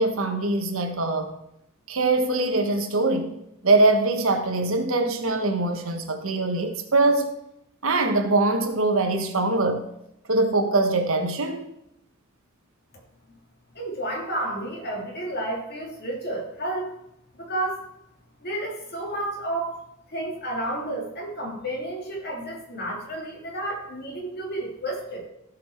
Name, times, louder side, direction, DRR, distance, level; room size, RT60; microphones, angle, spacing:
voice 1, 0.0-1.4 1.9-3.3 3.6-7.3 7.8-9.9 10.3-11.7, right 2 dB, 65° right, 1.3 m, -23 dB
voice 2, 13.7-16.9 17.4-17.8 18.4-19.8 20.1-25.3, right 1 dB, 50° left, 2.6 m, -31 dB
16.0 x 5.7 x 4.4 m
head